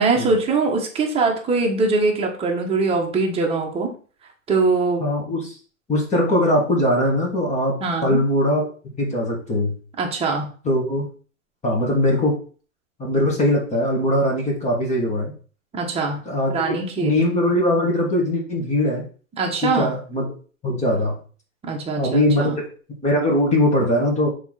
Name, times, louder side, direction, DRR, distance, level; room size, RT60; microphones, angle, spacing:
voice 1, 0.0-3.9 4.5-5.0 7.8-8.2 10.0-10.5 15.7-16.2 16.5-17.1 19.4-19.9 21.6-22.6, right 3 dB, 15° right, 0 dB, 1.4 m, -22 dB
voice 2, 5.0-5.5 5.9-8.7 9.0-9.8 10.6-11.1 11.6-12.4 13.0-15.3 16.3-19.0 19.6-20.3 20.6-21.2 22.0-22.5 23.0-24.3, left 1 dB, 15° left, -1 dB, 2.0 m, -21 dB
6.8 x 3.3 x 4.1 m, 0.41 s
figure-of-eight pair, 105°, 42 cm